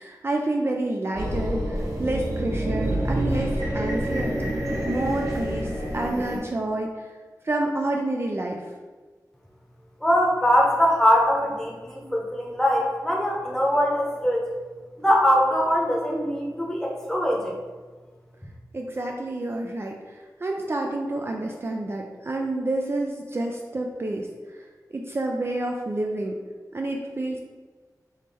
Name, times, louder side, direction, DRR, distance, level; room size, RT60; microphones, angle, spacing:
voice 1, 0.0-4.6 4.9-7.1 7.4-8.7 18.7-24.7 24.9-26.4 26.7-27.4, right 2 dB, 35° right, 1 dB, 0.4 m, -29 dB
sound 1, 1.1-6.4, right 1 dB, 50° right, 1.1 m, -27 dB
voice 2, 10.0-14.4 15.0-17.5, equal, 10° left, -2 dB, 0.9 m, -22 dB
3.6 x 3.1 x 4.2 m, 1.4 s
wide cardioid pair, 95°, 7 cm